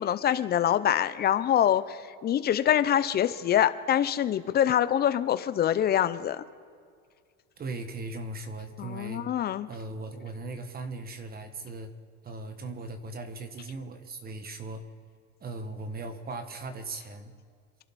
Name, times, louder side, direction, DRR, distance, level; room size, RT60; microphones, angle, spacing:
voice 1, 0.0-6.4 8.8-9.7, left 10 dB, 30° left, 13 dB, 0.7 m, -25 dB
voice 2, 7.6-9.2 9.7-11.9 12.2-14.8 15.4-17.3, right 2 dB, 25° right, 8 dB, 1.4 m, -38 dB
27.0 x 11.5 x 4.2 m, 2.1 s
cardioid pair, 140°, 34 cm